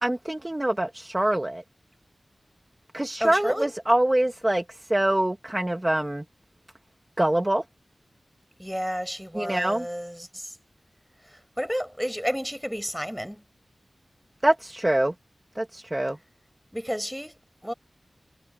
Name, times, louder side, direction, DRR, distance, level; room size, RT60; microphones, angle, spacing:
voice 1, 0.0-1.6 2.9-4.6 4.9-6.2 7.2-7.6 9.3-9.9 14.4-15.1 15.5-16.2, right 1 dB, 20° right, 1.5 m, -24 dB
voice 2, 3.2-3.7 8.6-10.6 11.3-13.4 16.7-17.7, equal, ahead, 5.9 m, -31 dB
wide cardioid pair, 75°, 0 cm